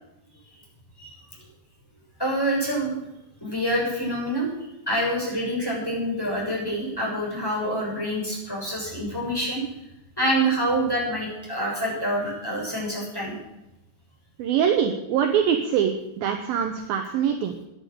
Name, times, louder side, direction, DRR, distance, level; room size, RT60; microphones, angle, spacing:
voice 1, 2.2-2.9 3.4-4.5 4.9-9.6 10.2-13.4, right 1 dB, 5° left, -4 dB, 6.5 m, -26 dB
voice 2, 14.4-17.6, right 8 dB, 70° right, 5 dB, 2.6 m, -23 dB
15.0 x 10.5 x 6.6 m, 0.89 s
omnidirectional pair, 4.8 m